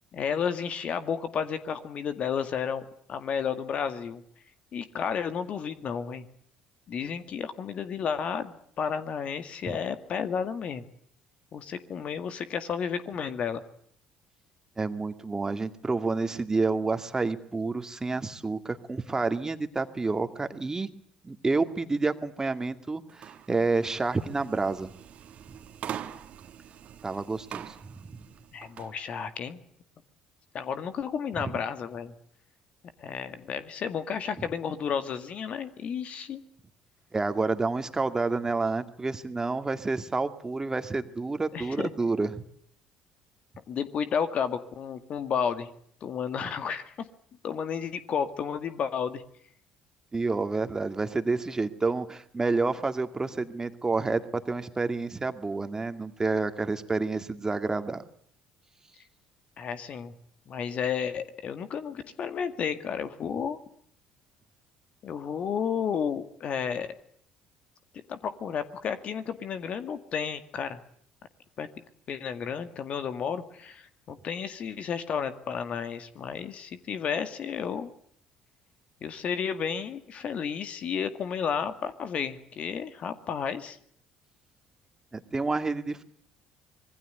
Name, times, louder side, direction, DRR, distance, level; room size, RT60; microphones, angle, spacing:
voice 1, 0.1-4.2 4.7-6.3 6.9-10.8 11.5-13.6 28.5-29.6 30.5-32.1 33.0-36.4 41.5-41.9 43.7-45.7 46.0-46.9 47.4-49.2 59.6-60.1 60.5-63.6 65.0-66.9 68.1-70.8 71.6-71.7 72.1-77.9 79.0-83.8, left 7 dB, 50° left, 11 dB, 2.0 m, -32 dB
voice 2, 14.8-20.9 21.2-24.9 27.0-28.2 31.4-31.5 37.1-42.4 50.1-58.0 85.1-86.0, right 3 dB, 20° right, 8 dB, 2.2 m, -29 dB
sound 1, 23.1-28.9, right 9 dB, 50° right, 1.9 m, -43 dB
26.0 x 21.5 x 8.0 m, 0.65 s
hypercardioid pair, 55°, 3 cm